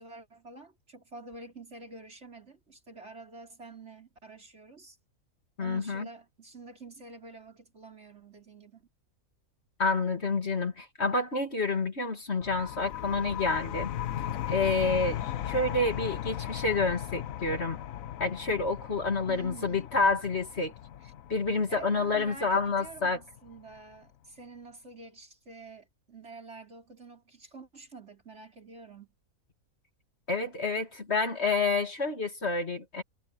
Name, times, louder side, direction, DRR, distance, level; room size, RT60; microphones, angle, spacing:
voice 1, 0.0-5.0 5.6-8.9 12.3-12.4 19.3-19.9 21.0-21.1 21.7-29.1, right 3 dB, 50° right, 5.1 m, -48 dB
voice 2, 5.6-6.0 9.8-13.9 14.5-17.8 18.2-20.7 21.3-23.2 30.3-33.0, left 3 dB, 45° left, 2.6 m, -28 dB
sound 1, 12.4-23.8, left 11 dB, 70° left, 1.2 m, -37 dB
omnidirectional pair, 1.5 m